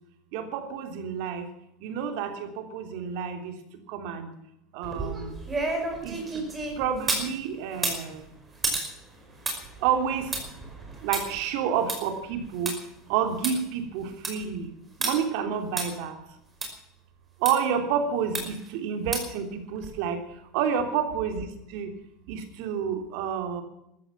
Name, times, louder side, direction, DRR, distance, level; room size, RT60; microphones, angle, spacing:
voice 1, 0.3-1.4 1.8-3.5 3.9-4.3 4.7-5.3 6.0-6.4 6.8-8.2 9.8-10.3 11.0-12.8 13.1-14.7 15.0-16.1 17.4-20.2 20.5-21.9 22.3-23.6, right 7 dB, 70° right, 6 dB, 3.3 m, -29 dB
sound 1, 4.8-7.3 7.7-12.7 13.1-13.2 13.4-13.5 14.0-14.4 15.0-15.1 15.8-15.9 16.6-16.7 17.4-17.5 18.3-18.7 19.1-19.4 19.8-19.9, right 3 dB, 15° right, 5.2 m, -31 dB
14.5 x 13.5 x 7.3 m, 0.81 s
supercardioid pair, 140°, 0 cm